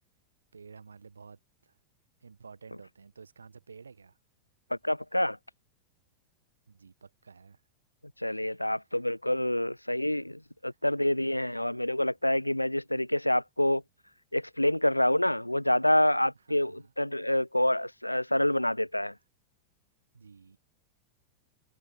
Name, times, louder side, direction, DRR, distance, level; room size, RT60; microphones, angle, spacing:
voice 1, 0.5-1.7 2.2-4.2 6.7-7.6 10.9-11.0 16.5-16.9 20.1-20.6, right 5 dB, 75° right, 1.5 m, -51 dB
voice 2, 4.7-5.4 8.2-13.8 14.3-19.1, left 1 dB, 85° left, 0.5 m, -27 dB
figure-of-eight pair, 90°, 0 cm